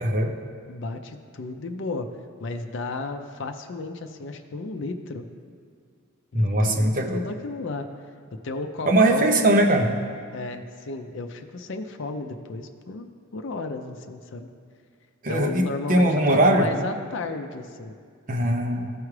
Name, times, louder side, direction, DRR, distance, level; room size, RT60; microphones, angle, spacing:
voice 1, 0.0-0.3 6.3-7.2 8.9-9.9 15.2-16.7 18.3-18.9, right 1 dB, 40° right, 3 dB, 0.7 m, -20 dB
voice 2, 0.7-2.1 2.4-5.2 6.3-7.9 8.4-9.4 10.3-13.1 13.3-14.5 15.3-17.9, left 3 dB, 60° left, 6 dB, 0.5 m, -33 dB
13.5 x 4.7 x 3.2 m, 2.1 s
head